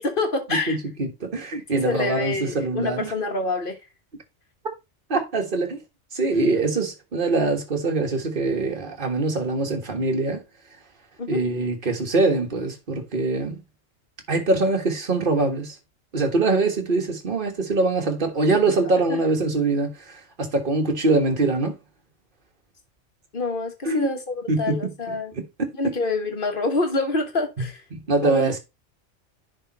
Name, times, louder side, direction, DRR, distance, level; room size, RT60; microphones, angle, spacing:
voice 1, 0.0-0.8 1.7-3.8 11.2-11.4 18.8-19.2 23.3-25.3 25.8-27.8 28.2-28.6, left 2 dB, 45° left, 1.7 m, -27 dB
voice 2, 0.7-3.1 5.1-5.8 6.1-10.4 11.3-13.6 14.3-15.7 16.1-21.8 23.8-24.1 24.5-24.9 25.3-25.4 27.6-27.7 28.1-28.6, right 3 dB, 45° right, 1.7 m, -23 dB
10.5 x 3.8 x 4.2 m
omnidirectional pair, 1.3 m